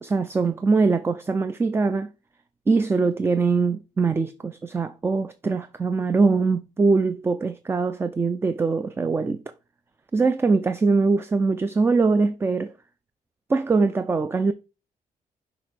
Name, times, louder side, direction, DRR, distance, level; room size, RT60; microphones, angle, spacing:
voice 1, 0.0-2.1 2.7-9.4 10.1-12.7 13.5-14.5, right 4 dB, 15° right, 0.3 m, -22 dB
6.0 x 3.3 x 4.7 m
cardioid pair, 150°, 15 cm